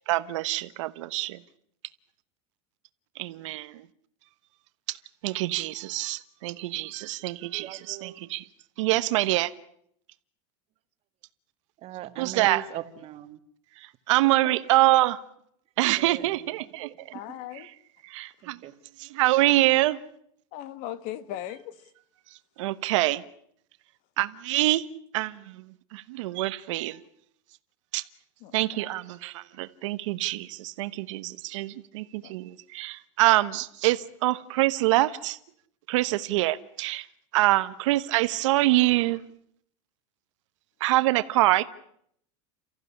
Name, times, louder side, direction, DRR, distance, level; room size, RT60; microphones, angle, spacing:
voice 1, 0.1-1.4 3.2-3.8 4.9-5.0 5.2-8.4 8.8-9.5 12.2-12.6 14.1-15.2 15.8-16.9 18.1-18.6 19.1-20.0 22.6-23.2 24.2-24.9 25.1-25.6 25.9-27.0 27.9-28.0 28.5-35.4 35.9-37.1 37.3-39.2 40.8-41.6, right 18 dB, 80° right, 1.2 m, -25 dB
voice 2, 7.3-8.2 11.8-13.4 14.4-14.8 16.0-17.0 18.4-18.7, right 12 dB, 40° right, 1.7 m, -40 dB
voice 3, 17.1-17.7 20.5-21.9 28.4-28.9 32.2-32.3, left 12 dB, 55° left, 1.8 m, -38 dB
29.5 x 15.0 x 10.0 m
supercardioid pair, 145°, 16 cm